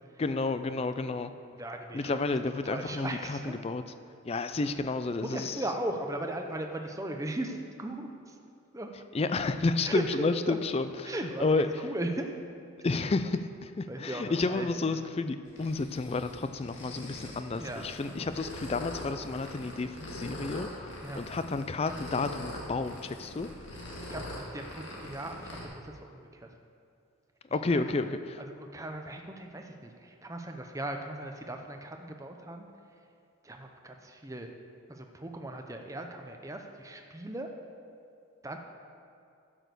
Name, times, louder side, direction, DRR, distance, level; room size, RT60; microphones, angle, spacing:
voice 1, 0.2-1.3 1.9-3.8 4.2-5.6 9.1-11.8 12.8-23.5 27.5-28.4, left 3 dB, 30° left, 10 dB, 0.3 m, -31 dB
voice 2, 1.6-2.1 2.6-3.6 5.3-8.1 8.7-8.9 9.9-10.0 10.5-10.6 11.1-12.3 13.9-15.0 17.6-17.8 18.1-18.3 21.0-21.2 24.1-25.5 25.8-25.9 26.4-26.5 27.7-27.8 28.6-32.7 33.4-34.5 34.9-37.5 38.4-38.6, right 1 dB, 15° right, 4 dB, 0.6 m, -37 dB
sound 1, 15.5-25.7, left 1 dB, 55° left, 2.0 m, -43 dB
11.0 x 6.2 x 6.8 m, 2.4 s
head